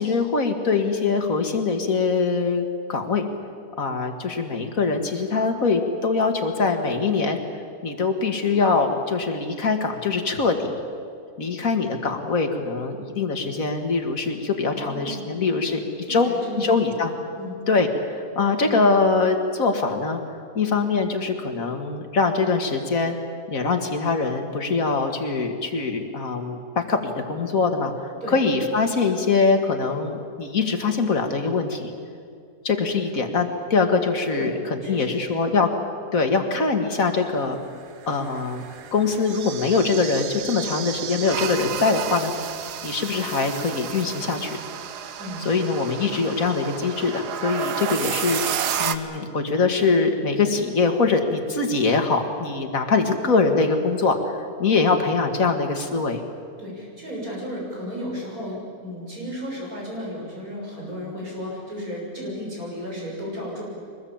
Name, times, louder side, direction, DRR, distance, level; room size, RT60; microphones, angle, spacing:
voice 1, 0.0-3.2 3.8-7.4 7.8-10.8 11.4-15.8 16.1-16.3 16.6-17.1 17.7-20.2 20.6-23.2 23.5-31.9 32.6-35.7 36.1-37.6 38.0-38.6 38.9-42.3 42.8-44.6 45.5-48.4 48.8-56.2, left 4 dB, 60° left, 5 dB, 2.3 m, -23 dB
voice 2, 14.7-15.2 15.5-15.6 16.0-16.6 16.9-17.0 17.4-17.6 28.2-28.4 34.4-35.5 45.2-45.5 56.6-63.6, equal, 60° right, -3 dB, 7.1 m, -34 dB
sound 1, 38.0-49.0, right 9 dB, 85° right, 1.5 m, -31 dB
23.5 x 20.0 x 8.8 m, 2.3 s
omnidirectional pair, 1.7 m